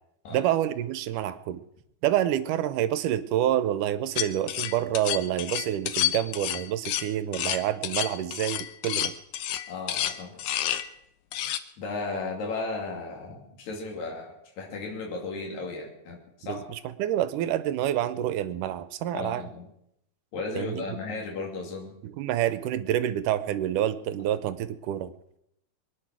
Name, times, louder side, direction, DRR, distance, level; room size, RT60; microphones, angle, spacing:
voice 1, 0.3-1.6 2.0-9.1 16.5-16.6 17.0-19.4 20.6-20.8 22.0-25.1, right 12 dB, 80° right, 13 dB, 2.3 m, -27 dB
sound 1, 4.2-10.9 11.3-11.6, left 12 dB, 75° left, 2.2 m, -30 dB
voice 2, 9.7-10.4 11.8-16.6 19.1-19.7 20.3-22.0, left 3 dB, 60° left, 0 dB, 4.0 m, -35 dB
23.0 x 10.0 x 6.1 m, 0.78 s
omnidirectional pair, 3.7 m